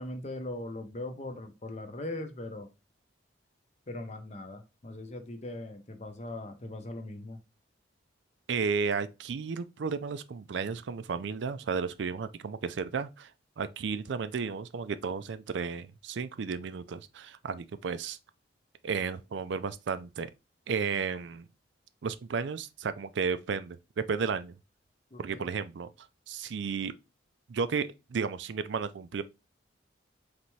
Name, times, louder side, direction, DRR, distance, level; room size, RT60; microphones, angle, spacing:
voice 1, 0.0-2.7 3.9-7.4 25.1-25.5, left 1 dB, 35° left, 0.7 m, -40 dB
voice 2, 8.5-13.3 13.6-18.2 18.8-20.3 20.7-21.5 22.0-24.6 25.2-25.9 26.3-26.9 27.5-29.2, right 5 dB, 70° right, 0.4 m, -33 dB
4.1 x 3.4 x 3.1 m
head